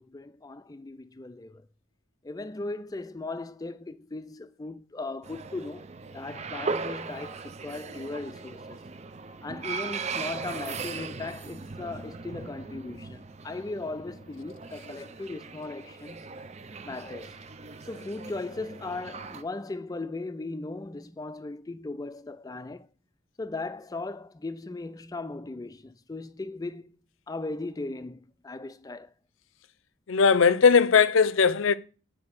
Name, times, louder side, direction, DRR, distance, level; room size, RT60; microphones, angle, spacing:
voice 1, 0.0-1.7 2.2-8.8 9.4-16.4 16.8-17.4 17.8-22.9 23.4-27.0 27.3-29.1, left 2 dB, 20° left, 0.4 m, -38 dB
sound 1, 5.2-19.4, right 4 dB, 30° right, 0.5 m, -39 dB
voice 2, 30.1-31.8, left 5 dB, 75° left, 0.5 m, -19 dB
8.7 x 4.1 x 6.0 m
head